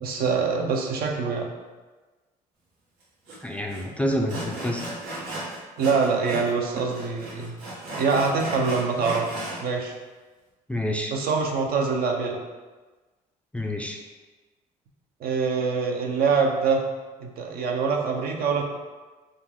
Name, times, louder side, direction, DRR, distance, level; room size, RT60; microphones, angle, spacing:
voice 1, 0.0-1.5 5.8-7.6 7.9-9.3 9.6-9.9 11.1-12.4 15.2-16.8 17.2-18.6, right 5 dB, 65° right, 1 dB, 0.7 m, -24 dB
Sawing, 3.3-3.4 3.7-3.8 4.3-6.5 6.8-9.6, right 1 dB, 85° right, 1.4 m, -35 dB
voice 2, 3.4-4.8 10.7-11.1 13.5-14.0, equal, 5° left, 1 dB, 0.4 m, -28 dB
5.3 x 2.4 x 3.5 m, 1.3 s
cardioid pair, 110°, 17 cm